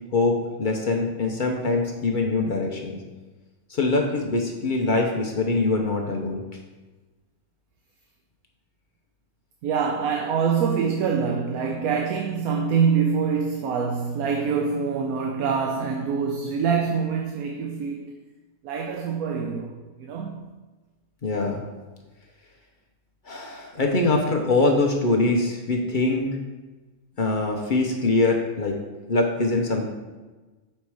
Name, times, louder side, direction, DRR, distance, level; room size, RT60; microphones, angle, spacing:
voice 1, 0.1-3.0 3.7-6.4 21.2-21.6 23.3-26.3 27.2-28.8 29.1-29.8, left 3 dB, 45° left, 0.7 m, -23 dB
voice 2, 9.6-18.1 18.6-20.4, right 6 dB, 90° right, 1.1 m, -25 dB
5.7 x 4.3 x 4.7 m
omnidirectional pair, 1.5 m